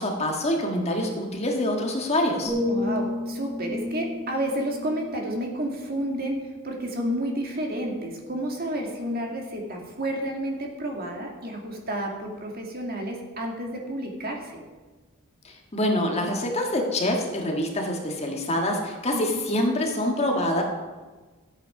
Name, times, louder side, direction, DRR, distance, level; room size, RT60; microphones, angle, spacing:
voice 1, 0.0-2.5 15.4-20.6, left 1 dB, 30° left, 1 dB, 1.7 m, -26 dB
sound 1, 2.5-6.4 6.9-7.1, left 1 dB, 15° right, 4.0 m, -32 dB
voice 2, 2.7-14.5 19.1-19.4, right 1 dB, 40° right, 1 dB, 2.2 m, -30 dB
13.5 x 8.9 x 5.9 m, 1.3 s
head